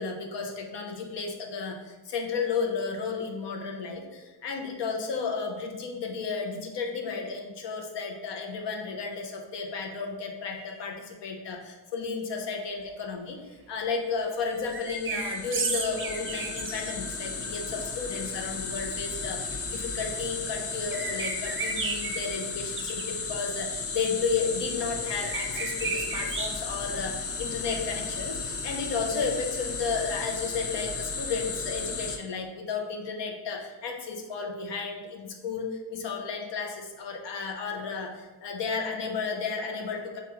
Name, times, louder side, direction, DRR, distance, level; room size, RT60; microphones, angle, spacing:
voice 1, 0.0-13.4 13.7-40.2, left 5 dB, 90° left, 2 dB, 0.8 m, -33 dB
sound 1, 14.4-32.2, left 4 dB, 35° left, 0.4 m, -35 dB
sound 2, 14.7-16.9 20.8-22.2 22.8-23.0 25.1-26.5, right 4 dB, 30° right, 0.5 m, -32 dB
6.9 x 2.5 x 3.0 m, 1.2 s
wide cardioid pair, 145°, 41 cm